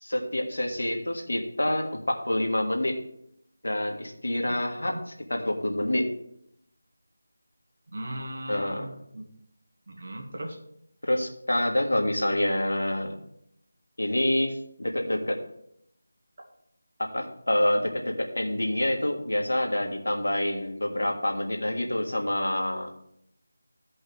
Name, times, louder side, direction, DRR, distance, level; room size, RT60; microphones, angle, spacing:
voice 1, 0.0-3.0 3.6-6.1 8.5-8.8 11.0-13.1 14.0-15.4 17.1-22.9, left 1 dB, 80° left, 2 dB, 1.9 m, -27 dB
voice 2, 7.9-9.3 9.9-10.6, right 1 dB, 55° right, 1 dB, 2.2 m, -38 dB
16.0 x 5.4 x 3.5 m, 0.73 s
figure-of-eight pair, 165°, 0 cm